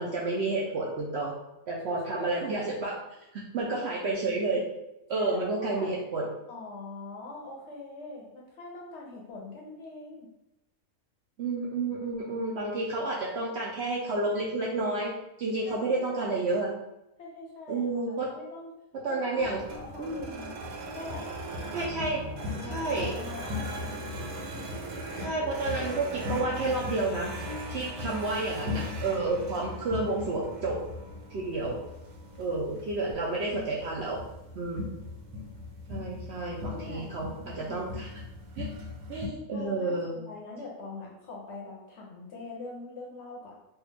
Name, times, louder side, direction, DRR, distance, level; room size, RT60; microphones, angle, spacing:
voice 1, 0.0-1.3 1.7-3.0 3.3-4.7 5.1-6.3 11.4-16.7 17.7-18.3 19.0-19.6 20.0-20.3 21.7-22.2 22.6-23.2 25.2-27.3 27.7-30.8 31.3-31.8 32.4-34.2 34.5-35.0 35.9-38.1 38.6-38.7 39.1-40.2, right 2 dB, 65° right, -2 dB, 0.7 m, -30 dB
voice 2, 1.9-2.8 5.2-5.9 6.5-10.3 15.7-16.6 17.2-18.7 19.1-20.5 20.9-21.3 22.3-24.0 36.7-37.8 39.5-40.0 40.3-43.6, left 2 dB, 60° left, -2 dB, 0.8 m, -43 dB
sound 1, 19.4-39.3, left 1 dB, 85° right, 1.1 m, -38 dB
3.4 x 2.3 x 3.1 m, 0.90 s
omnidirectional pair, 1.5 m